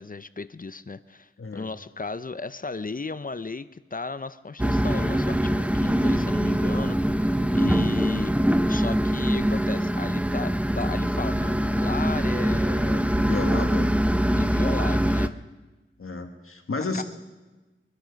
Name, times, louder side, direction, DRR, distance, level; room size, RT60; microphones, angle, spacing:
voice 1, 0.0-13.0 14.4-15.5 16.9-17.0, left 3 dB, 40° left, 14 dB, 0.6 m, -35 dB
voice 2, 1.4-1.7 7.5-7.9 13.1-14.0 16.0-17.0, left 3 dB, 85° left, 5 dB, 1.6 m, -32 dB
sound 1, 4.6-15.3, equal, 5° right, 0.7 m, -23 dB
24.0 x 11.5 x 5.2 m, 1.2 s
wide cardioid pair, 40°, 21 cm